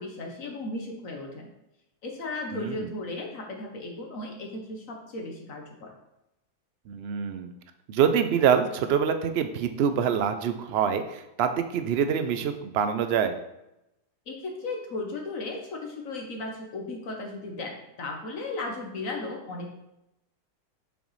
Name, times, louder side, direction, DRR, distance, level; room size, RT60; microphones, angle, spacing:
voice 1, 0.0-1.5 2.0-5.9 14.3-19.7, left 2 dB, 60° left, 1 dB, 1.3 m, -36 dB
voice 2, 2.5-2.9 6.9-7.5 7.9-13.4, right 7 dB, 85° right, 9 dB, 0.5 m, -25 dB
7.0 x 6.2 x 3.2 m, 0.88 s
omnidirectional pair, 1.7 m